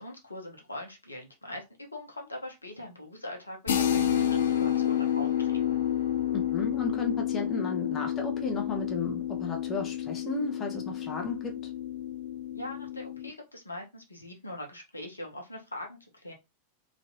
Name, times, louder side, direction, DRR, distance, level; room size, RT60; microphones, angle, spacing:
voice 1, 0.0-5.8 12.5-16.3, left 1 dB, 80° left, 0.9 m, -42 dB
sound 1, 3.7-13.3, left 10 dB, 65° left, 0.4 m, -30 dB
voice 2, 6.3-11.6, left 3 dB, 25° left, 0.9 m, -34 dB
3.1 x 2.8 x 2.7 m
figure-of-eight pair, 90°, 0 cm